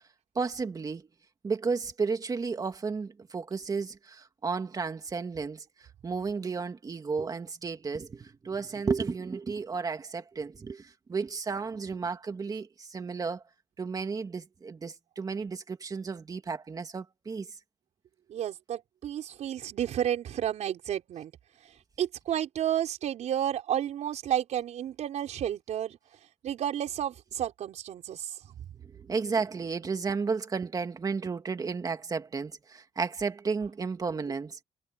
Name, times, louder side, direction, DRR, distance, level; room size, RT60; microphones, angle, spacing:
voice 1, 0.4-1.1 1.4-5.6 6.0-13.4 13.8-17.5 28.8-34.6, right 5 dB, 30° right, 2.2 m, -33 dB
voice 2, 18.3-21.3 22.0-26.0 26.4-28.3, right 10 dB, 70° right, 4.9 m, -31 dB
cardioid pair, 125°, 12 cm